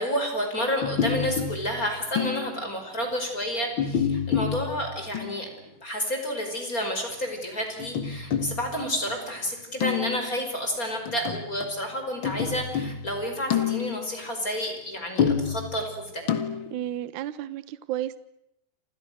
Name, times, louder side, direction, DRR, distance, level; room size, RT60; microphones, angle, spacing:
voice 1, 0.0-5.5 5.8-16.2, equal, 20° left, 4 dB, 5.6 m, -30 dB
sound 1, 0.8-2.7 3.8-5.5 7.8-9.3 9.8-10.5 11.1-11.8 12.2-14.2 15.2-16.8, left 7 dB, 50° left, 1.6 m, -29 dB
voice 2, 16.7-18.2, right 12 dB, 75° right, 15 dB, 1.8 m, -32 dB
30.0 x 27.5 x 6.5 m, 0.80 s
omnidirectional pair, 5.1 m